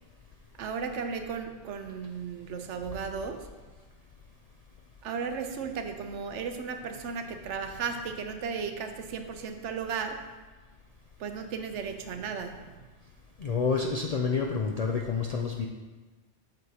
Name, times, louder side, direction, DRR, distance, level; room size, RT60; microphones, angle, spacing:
voice 1, 0.6-3.5 5.0-10.2 11.2-12.7, right 6 dB, 75° right, 6 dB, 1.0 m, -35 dB
voice 2, 13.4-15.7, left 5 dB, 60° left, 1 dB, 0.4 m, -28 dB
7.8 x 6.5 x 2.8 m, 1.3 s
omnidirectional pair, 1.2 m